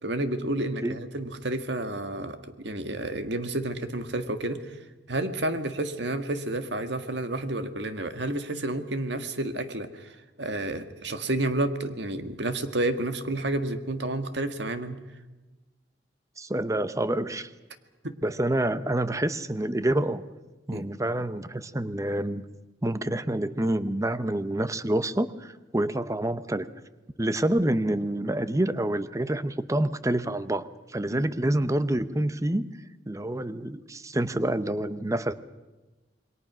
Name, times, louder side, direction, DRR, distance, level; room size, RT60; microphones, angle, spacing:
voice 1, 0.0-2.4 2.6-4.6 5.1-15.0 18.0-18.1 20.7-20.9 31.0-31.2, right 1 dB, 70° right, 8 dB, 1.8 m, -30 dB
voice 2, 16.4-17.5 18.2-20.2 20.7-22.4 22.8-26.7 27.2-32.7 33.1-35.3, right 1 dB, 15° right, 13 dB, 0.8 m, -27 dB
27.5 x 22.5 x 6.2 m, 1.1 s
head